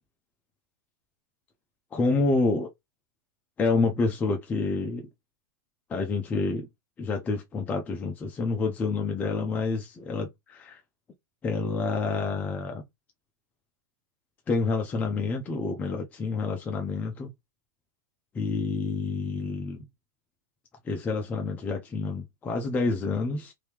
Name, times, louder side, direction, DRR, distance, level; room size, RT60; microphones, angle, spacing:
voice 1, 1.9-2.7 3.6-5.1 5.9-6.7 7.0-10.8 11.4-12.8 14.5-17.3 18.3-19.8 20.8-23.5, left 3 dB, 15° left, 0.5 m, -28 dB
3.1 x 2.7 x 3.4 m
supercardioid pair, 155°, 11 cm